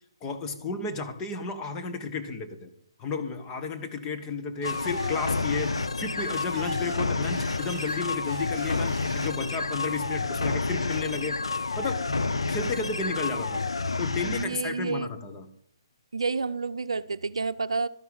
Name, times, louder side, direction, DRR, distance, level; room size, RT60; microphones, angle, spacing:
voice 1, 0.2-2.7 3.0-11.4 11.8-13.7 14.0-15.5, left 4 dB, 20° left, 5 dB, 1.5 m, -33 dB
sound 1, 4.6-14.4, left 3 dB, 80° left, 0.8 m, -29 dB
Shatter, 4.6-9.4, right 6 dB, 20° right, 4.3 m, -47 dB
voice 2, 14.2-15.1 16.1-17.9, right 4 dB, 75° right, 13 dB, 0.6 m, -29 dB
12.5 x 11.0 x 5.5 m, 0.66 s
figure-of-eight pair, 140°, 3 cm